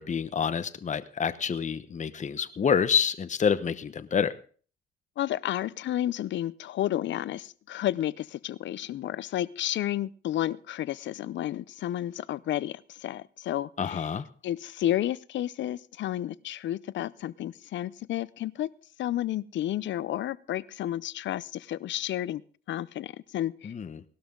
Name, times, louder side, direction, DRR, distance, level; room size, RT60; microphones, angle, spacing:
voice 1, 0.0-4.3 13.8-14.3 23.6-24.0, left 7 dB, 35° left, 12 dB, 1.0 m, -27 dB
voice 2, 5.2-14.1 14.4-18.7 19.0-22.4 22.7-23.7, left 12 dB, 65° left, 19 dB, 0.6 m, -31 dB
18.0 x 12.5 x 3.8 m, 0.42 s
cardioid pair, 90°, 20 cm